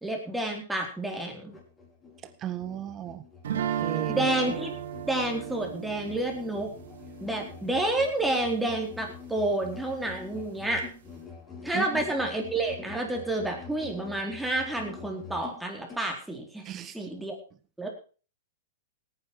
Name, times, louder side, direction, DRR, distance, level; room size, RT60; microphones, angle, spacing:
voice 1, 0.0-1.6 4.1-4.7 5.0-6.7 7.2-10.9 11.6-16.7 16.9-17.4 17.8-17.9, right 2 dB, 5° right, 1 dB, 4.2 m, -29 dB
Musical instrument, 1.5-16.1, left 5 dB, 15° left, 5.4 m, -46 dB
voice 2, 2.4-3.2 3.8-4.2 11.7-12.0 16.6-17.0, right 11 dB, 30° right, 13 dB, 1.6 m, -35 dB
sound 1, 3.4-8.4, right 9 dB, 75° right, 3.5 m, -35 dB
17.5 x 9.7 x 4.8 m, 0.37 s
hypercardioid pair, 125°, 0 cm